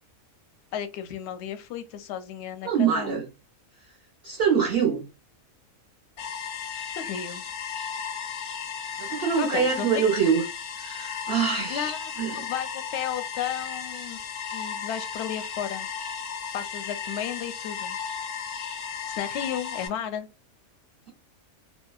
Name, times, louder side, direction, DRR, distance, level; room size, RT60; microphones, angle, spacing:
voice 1, 0.7-3.2 6.9-7.4 9.4-10.0 11.7-14.2 14.5-15.9 16.5-18.0 19.2-20.3, left 9 dB, 65° left, 0.7 m, -33 dB
voice 2, 2.6-3.3 4.2-5.1 9.0-10.4 10.8-11.9 12.2-12.4, right 6 dB, 55° right, 0.7 m, -24 dB
sound 1, 6.2-19.9, left 7 dB, 90° left, 1.1 m, -35 dB
2.7 x 2.2 x 2.3 m
omnidirectional pair, 1.5 m